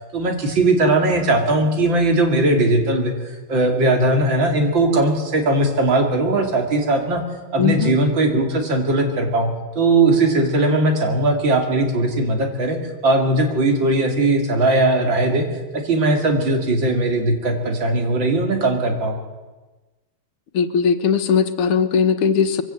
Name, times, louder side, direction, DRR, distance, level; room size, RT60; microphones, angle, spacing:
voice 1, 0.1-3.1 3.5-7.2 7.5-15.5 15.7-19.2, right 2 dB, 60° right, 4 dB, 3.2 m, -19 dB
voice 2, 7.6-8.0 20.5-22.6, left 7 dB, 85° left, 10 dB, 2.1 m, -19 dB
22.5 x 16.0 x 7.7 m, 1.2 s
omnidirectional pair, 2.3 m